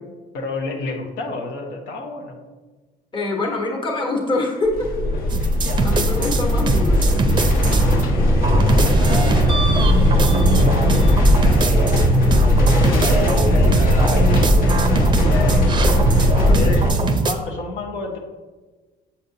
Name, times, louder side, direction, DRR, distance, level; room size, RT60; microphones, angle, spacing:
voice 1, 0.3-2.4 5.0-6.4 8.0-12.2 12.8-16.1 16.3-18.2, left 2 dB, 85° left, 0 dB, 1.0 m, -31 dB
voice 2, 3.1-4.9 5.8-7.3 16.5-16.9, left 2 dB, 30° left, 0 dB, 1.2 m, -25 dB
sound 1, 4.7-16.9, equal, 55° left, 1.1 m, -18 dB
sound 2, 5.3-8.0 8.4-17.3, right 2 dB, 30° right, 0.5 m, -21 dB
7.1 x 5.2 x 2.7 m, 1.3 s
cardioid pair, 110°, 17 cm